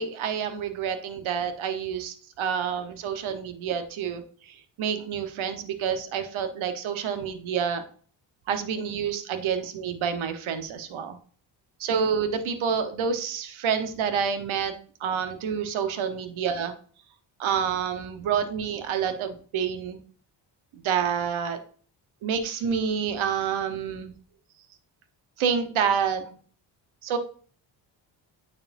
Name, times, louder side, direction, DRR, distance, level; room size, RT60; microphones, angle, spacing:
voice 1, 0.0-4.2 4.8-7.8 8.5-11.2 11.8-14.7 15.0-16.7 17.4-20.0 20.8-21.6 22.2-24.1 25.4-26.3 27.0-27.2, right 7 dB, 70° right, 9 dB, 1.2 m, -28 dB
8.6 x 4.8 x 2.6 m, 0.44 s
supercardioid pair, 65°, 49 cm